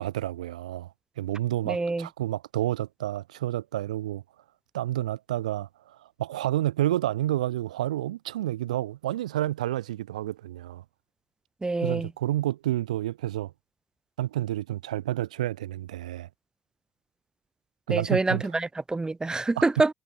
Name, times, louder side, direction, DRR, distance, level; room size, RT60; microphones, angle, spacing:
voice 1, 0.0-4.2 4.7-10.8 11.8-13.5 14.2-16.3 17.9-18.4, right 14 dB, 80° right, 2.0 m, -30 dB
voice 2, 1.6-2.1 11.6-12.1 17.9-19.9, right 3 dB, 20° right, 2.9 m, -26 dB
hypercardioid pair, 55°, 4 cm